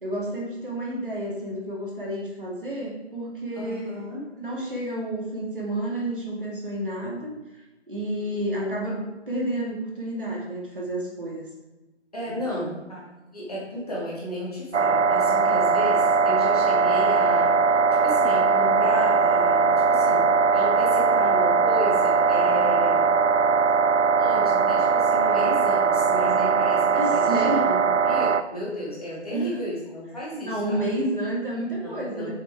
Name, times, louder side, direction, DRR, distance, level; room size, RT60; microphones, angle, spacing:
voice 1, 0.0-4.0 4.4-7.3 7.9-11.5 12.4-12.8 27.0-27.7 29.3-29.6 30.4-32.3, right 1 dB, 45° right, -4 dB, 2.6 m, -30 dB
voice 2, 3.6-4.3 12.1-13.0 13.3-17.6 18.0-20.3 20.5-23.1 24.2-30.9 31.8-32.3, left 1 dB, 35° left, -5 dB, 2.4 m, -33 dB
sound 1, 14.7-28.4, right 5 dB, 80° right, 0.6 m, -20 dB
7.8 x 7.1 x 3.6 m, 1.1 s
figure-of-eight pair, 170°, 35 cm